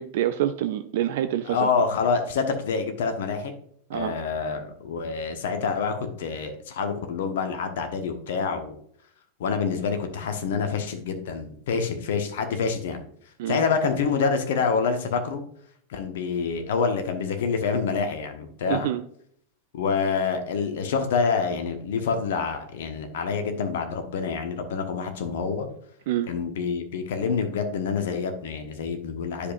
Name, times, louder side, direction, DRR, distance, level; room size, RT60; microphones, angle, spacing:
voice 1, 0.0-1.7 3.9-4.2 13.4-13.6 18.7-19.0 26.1-26.3, right 12 dB, 55° right, 0.4 m, -26 dB
voice 2, 1.5-3.5 3.9-8.8 9.4-13.0 13.5-15.4 15.9-18.9 19.7-25.7 26.3-29.5, left 5 dB, 55° left, 1.1 m, -27 dB
10.0 x 5.3 x 2.5 m
figure-of-eight pair, 90°, 0 cm